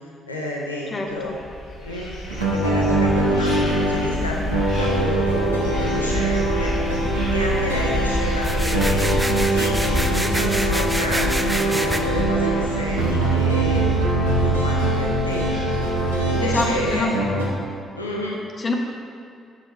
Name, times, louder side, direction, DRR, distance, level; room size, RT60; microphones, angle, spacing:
voice 1, 0.3-1.4 1.8-9.1 9.5-14.1 14.4-15.9 16.2-17.1 18.0-18.4, left 1 dB, 90° left, -3 dB, 0.7 m, -30 dB
voice 2, 0.9-1.3 16.4-17.1 18.6-18.7, left 3 dB, 35° left, 1 dB, 1.3 m, -25 dB
sound 1, 1.2-16.9, left 1 dB, 65° left, 2.1 m, -28 dB
sound 2, 2.3-17.5, right 2 dB, 85° right, 1.4 m, -23 dB
sound 3, 8.4-12.0, right 1 dB, 10° right, 0.8 m, -27 dB
8.4 x 6.4 x 5.4 m, 2.4 s
figure-of-eight pair, 45°, 0 cm